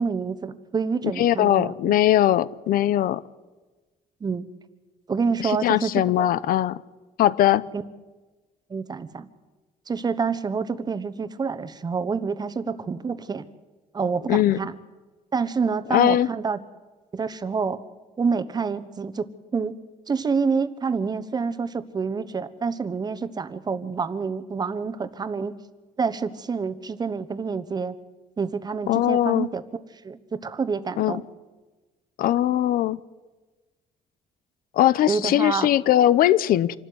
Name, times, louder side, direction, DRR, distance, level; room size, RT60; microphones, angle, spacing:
voice 1, 0.0-2.0 4.2-4.5 5.1-6.3 7.7-7.8 8.7-9.3 9.9-13.4 13.9-14.8 15.3-16.6 17.1-17.8 18.2-19.8 20.1-25.5 26.0-28.0 28.4-29.6 30.0-31.2 35.1-35.7, right 5 dB, 25° right, 13 dB, 1.1 m, -27 dB
voice 2, 1.2-3.2 5.4-6.8 7.2-7.6 14.3-14.6 15.9-16.3 28.9-29.5 31.0-31.1 32.2-33.0 34.8-36.8, left 12 dB, 75° left, 18 dB, 0.8 m, -20 dB
26.5 x 12.5 x 9.5 m, 1.2 s
cardioid pair, 145°, 15 cm